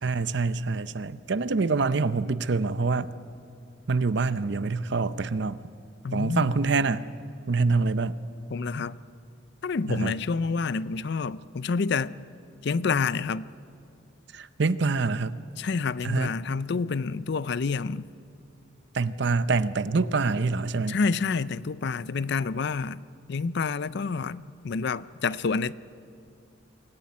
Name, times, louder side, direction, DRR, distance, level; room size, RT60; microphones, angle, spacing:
voice 1, 0.0-3.1 3.9-5.6 6.1-7.1 7.5-8.2 9.9-10.2 14.3-15.4 16.0-16.4 18.9-21.0, right 4 dB, 60° right, 0.6 m, -26 dB
voice 2, 6.0-6.5 8.5-9.0 9.6-12.1 12.6-13.5 15.6-18.1 20.9-23.0 23.3-25.7, left 4 dB, 55° left, 0.5 m, -28 dB
24.5 x 14.5 x 9.5 m
head